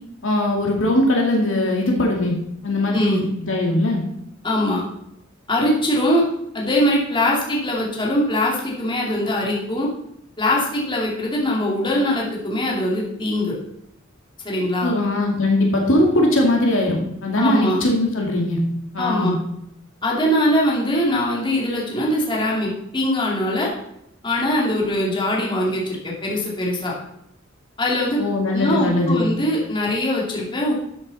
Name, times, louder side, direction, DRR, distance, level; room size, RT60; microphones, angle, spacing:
voice 1, 0.2-2.4 2.6-4.0 14.8-18.6 18.9-19.3 28.2-29.3, left 1 dB, 70° left, 0 dB, 2.3 m, -20 dB
voice 2, 2.9-3.2 4.4-4.8 5.5-6.2 6.5-9.9 10.4-13.5 14.4-14.9 17.4-17.8 19.0-19.3 20.0-23.7 24.2-26.9 27.8-28.2 28.5-30.7, left 1 dB, 25° left, -3 dB, 2.7 m, -22 dB
12.5 x 8.1 x 4.2 m, 0.78 s
head